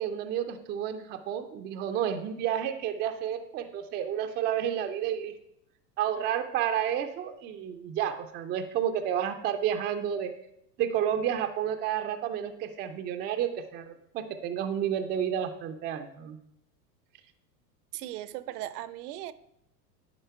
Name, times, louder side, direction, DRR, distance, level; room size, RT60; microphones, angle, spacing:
voice 1, 0.0-5.3 6.0-10.3 10.8-16.4, right 9 dB, 20° right, 7 dB, 0.3 m, -31 dB
voice 2, 17.9-19.3, right 14 dB, 65° right, 16 dB, 0.6 m, -38 dB
10.5 x 3.9 x 4.5 m, 0.78 s
hypercardioid pair, 100°, 50 cm